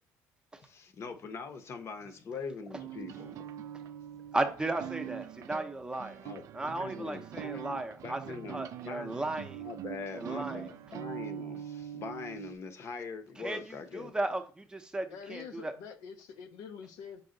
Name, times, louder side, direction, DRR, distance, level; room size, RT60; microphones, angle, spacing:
voice 1, 0.6-3.5 6.2-14.1, left 4 dB, 45° left, 0.8 m, -43 dB
sound 1, 2.7-12.6, right 10 dB, 60° right, 0.4 m, -43 dB
voice 2, 4.3-6.2 6.5-8.2 8.5-9.6 10.1-10.6 13.4-15.7, right 2 dB, 15° right, 0.6 m, -35 dB
voice 3, 15.1-17.2, left 6 dB, 85° left, 0.6 m, -46 dB
5.4 x 2.2 x 3.8 m
cardioid pair, 105°, 6 cm